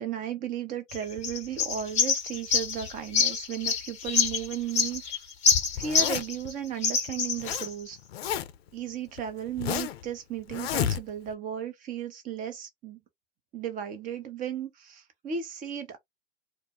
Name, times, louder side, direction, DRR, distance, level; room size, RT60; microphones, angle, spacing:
voice 1, 0.0-5.3 5.7-8.0 8.7-13.0 13.5-16.0, right 8 dB, 25° right, 0.7 m, -35 dB
sound 1, 0.9-6.5 6.8-7.7, left 5 dB, 20° left, 0.8 m, -26 dB
Zipper (clothing), 5.8-6.5 7.1-7.7 7.9-8.7 9.2-10.0 10.5-11.3, left 10 dB, 60° left, 0.5 m, -31 dB
2.2 x 2.1 x 2.9 m
hypercardioid pair, 110°, 36 cm